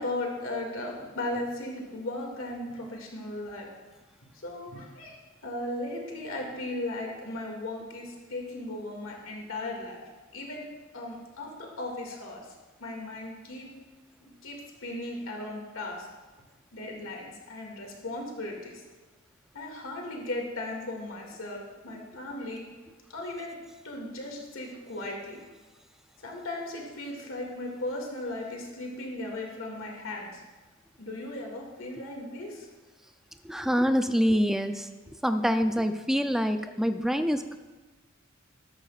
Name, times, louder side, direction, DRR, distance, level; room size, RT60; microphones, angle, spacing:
voice 1, 0.0-3.7 4.4-10.0 10.3-10.7 10.9-12.4 12.8-13.7 14.2-16.1 16.7-18.8 19.5-22.7 23.1-23.6 23.8-25.4 26.2-30.4 31.0-32.7, left 2 dB, 75° left, 0 dB, 2.3 m, -36 dB
voice 2, 33.4-34.9 35.2-37.6, equal, ahead, 7 dB, 0.5 m, -25 dB
13.5 x 13.0 x 2.5 m, 1.3 s
head